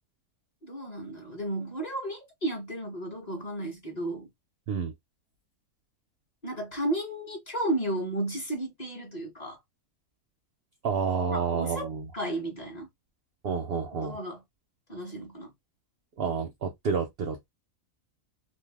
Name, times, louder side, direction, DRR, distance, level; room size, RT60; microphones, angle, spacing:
voice 1, 0.6-4.3 6.4-9.6 11.3-11.9 12.1-12.9 13.9-14.4 14.9-15.5, right 1 dB, 35° left, 1.0 m, -33 dB
voice 2, 10.8-12.0 13.4-14.2 16.2-17.5, right 6 dB, 65° right, 0.6 m, -29 dB
2.6 x 2.1 x 3.3 m
omnidirectional pair, 1.4 m